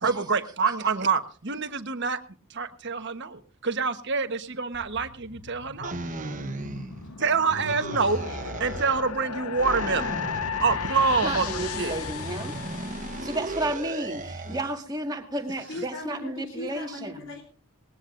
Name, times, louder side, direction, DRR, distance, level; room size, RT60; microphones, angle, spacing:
voice 1, 0.0-2.2 2.5-6.0 7.2-8.2 8.6-10.1 10.6-11.9, right 4 dB, 55° right, 8 dB, 1.2 m, -26 dB
sound 1, 4.7-14.1, left 7 dB, 85° left, 0.8 m, -36 dB
sound 2, 5.8-7.1 7.5-9.1 9.5-14.7, right 2 dB, 35° right, 1.1 m, -36 dB
voice 2, 7.2-8.6 13.6-13.7 14.4-14.8 15.6-17.4, left 2 dB, 60° left, 3 dB, 3.4 m, -40 dB
voice 3, 11.2-12.6 13.2-17.2, right 1 dB, 20° right, 3 dB, 2.0 m, -32 dB
19.5 x 19.5 x 2.6 m, 0.38 s
head